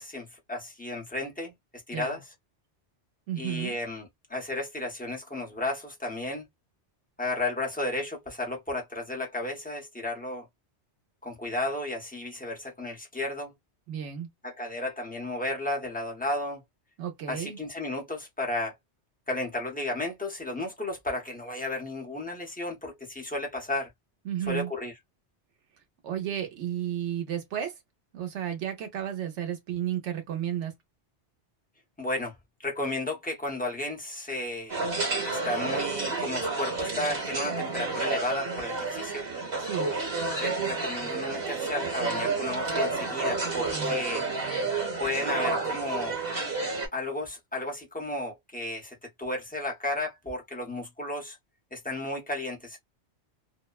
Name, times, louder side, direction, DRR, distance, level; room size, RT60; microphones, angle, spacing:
voice 1, 0.0-1.5 1.9-2.2 3.4-6.5 7.2-10.4 11.2-13.5 14.4-16.6 17.3-18.8 19.3-23.9 24.5-24.9 32.0-32.3 32.6-34.8 35.2-39.3 40.4-44.2 45.0-46.2 46.9-51.4 51.7-52.8, left 2 dB, 10° left, 0.7 m, -33 dB
voice 2, 3.3-3.8 13.9-14.3 17.0-17.6 24.2-24.7 26.0-27.7 28.1-30.7 39.6-39.9 43.7-44.8, right 10 dB, 90° right, 1.1 m, -33 dB
sound 1, 34.7-46.9, right 3 dB, 55° right, 1.3 m, -30 dB
2.6 x 2.1 x 2.3 m
omnidirectional pair, 1.2 m